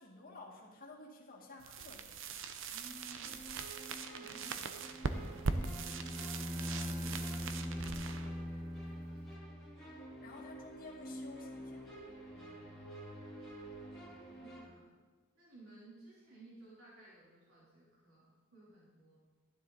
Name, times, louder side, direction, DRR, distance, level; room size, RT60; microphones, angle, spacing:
voice 1, 0.0-2.4 10.2-11.9, left 2 dB, 45° left, -2 dB, 2.2 m, -52 dB
sound 1, 1.6-9.4, right 4 dB, 65° right, 0.7 m, -41 dB
voice 2, 2.7-3.5 4.0-9.6 12.3-12.8 14.3-15.0 15.3-19.2, right 2 dB, 85° right, -7 dB, 3.5 m, -59 dB
sound 2, 3.2-14.6, right 1 dB, 5° left, 2.9 m, -51 dB
Bowed string instrument, 5.1-9.9, left 1 dB, 20° right, 0.7 m, -41 dB
12.5 x 10.5 x 4.1 m, 1.3 s
head